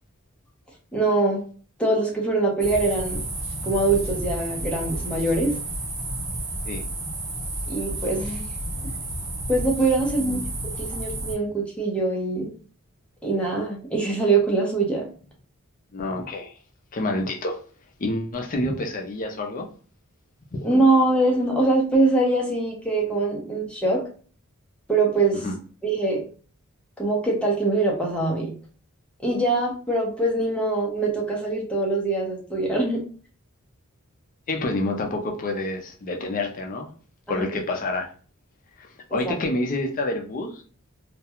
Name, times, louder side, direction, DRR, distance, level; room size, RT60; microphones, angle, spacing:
voice 1, 0.9-1.4 1.8-3.2 3.6-5.5 7.7-8.4 8.8-8.9 9.5-10.4 10.8-12.5 13.2-15.0 20.6-24.0 24.9-25.4 25.8-26.2 27.0-28.5 29.2-33.0 37.3-37.5 39.1-39.3, right 2 dB, 5° left, 0.7 m, -23 dB
sound 1, 2.6-11.3, right 1 dB, 55° right, 0.9 m, -31 dB
voice 2, 15.9-16.5 16.9-17.6 18.0-19.7 20.5-20.7 25.3-25.6 34.5-36.9 37.3-38.1 38.8-40.6, left 2 dB, 40° left, 0.5 m, -28 dB
2.3 x 2.2 x 2.8 m
head